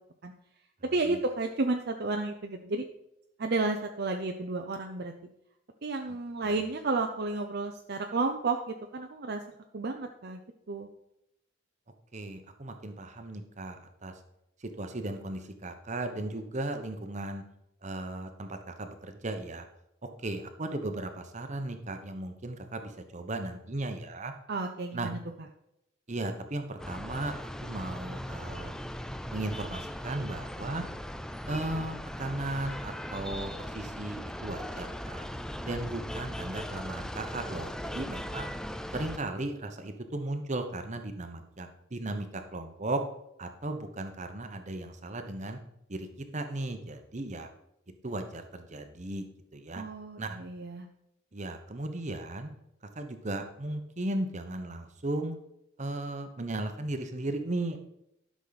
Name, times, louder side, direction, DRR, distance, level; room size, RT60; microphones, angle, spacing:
voice 1, 0.8-2.9 3.4-5.1 5.8-9.4 9.7-10.4 10.7-10.9 24.5-25.2 49.7-50.9, right 3 dB, 50° right, 4 dB, 0.6 m, -32 dB
voice 2, 12.1-14.1 14.6-17.4 17.8-19.7 20.2-24.3 24.9-25.1 26.1-27.4 27.6-28.7 29.3-30.8 31.5-35.3 35.6-38.5 38.9-43.0 43.4-45.6 45.9-46.1 46.3-47.5 48.0-49.3 49.5-49.8 50.2-50.3 51.3-52.5 52.9-55.4 55.8-57.8, right 2 dB, 35° right, 7 dB, 1.0 m, -36 dB
sound 1, 26.8-39.2, equal, 5° left, 0.3 m, -39 dB
12.0 x 6.2 x 4.1 m, 0.80 s
head